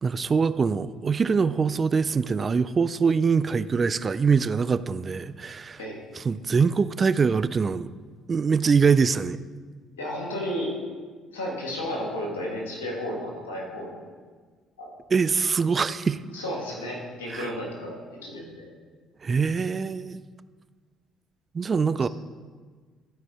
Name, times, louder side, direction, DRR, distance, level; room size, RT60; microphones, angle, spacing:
voice 1, 0.0-5.8 6.2-7.9 8.3-9.4 15.1-16.2 17.3-17.5 19.2-20.2 21.5-22.1, right 5 dB, 35° right, 15 dB, 0.3 m, -23 dB
voice 2, 10.0-10.8 11.3-13.9 14.8-14.9 16.3-18.7, left 1 dB, 85° left, -2 dB, 1.7 m, -33 dB
12.5 x 4.7 x 4.2 m, 1.5 s
hypercardioid pair, 55°, 0 cm